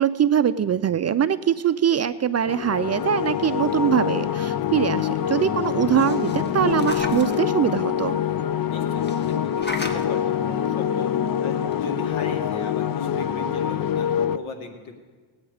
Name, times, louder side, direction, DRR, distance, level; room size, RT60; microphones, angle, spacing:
voice 1, 0.0-8.2, right 9 dB, 35° right, 13 dB, 0.4 m, -22 dB
sound 1, 2.5-14.4, left 9 dB, 45° left, 0.6 m, -25 dB
sound 2, 5.7-7.4 9.0-10.0 11.3-11.4 11.7-11.8, left 1 dB, 20° left, 1.6 m, -35 dB
voice 2, 8.7-11.1 11.4-14.9, left 3 dB, 75° left, 4 dB, 2.1 m, -37 dB
18.5 x 8.8 x 4.9 m, 1.4 s
cardioid pair, 80°, 48 cm